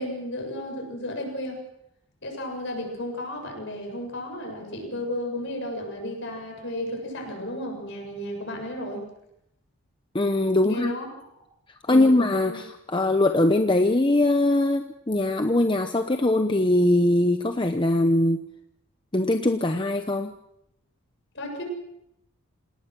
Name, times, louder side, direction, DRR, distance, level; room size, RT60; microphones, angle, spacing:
voice 1, 0.0-1.6 2.2-9.1 10.6-11.3 11.9-12.6 21.3-21.6, left 1 dB, 55° left, 3 dB, 7.2 m, -33 dB
voice 2, 10.1-10.9 11.9-18.4 19.1-20.3, left 1 dB, 20° left, 6 dB, 0.8 m, -21 dB
28.0 x 19.0 x 6.2 m, 0.80 s
head